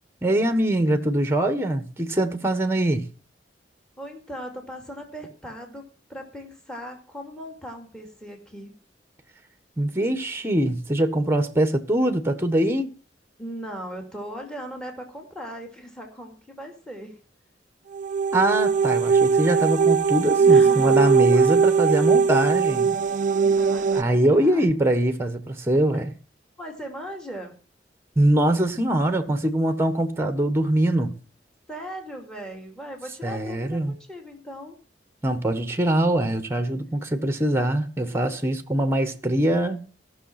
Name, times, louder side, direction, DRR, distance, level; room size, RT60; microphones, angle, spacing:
voice 1, 0.2-3.1 9.8-12.9 18.3-23.0 23.9-26.2 28.2-31.1 33.2-34.0 35.2-39.9, right 1 dB, 15° right, 1.3 m, -23 dB
voice 2, 4.0-5.8 6.1-8.7 13.4-17.2 20.4-21.9 23.4-24.7 26.6-27.6 31.7-34.8, equal, 5° left, 2.5 m, -38 dB
sound 1, 17.9-24.0, right 5 dB, 45° right, 0.6 m, -20 dB
15.5 x 6.5 x 5.9 m
head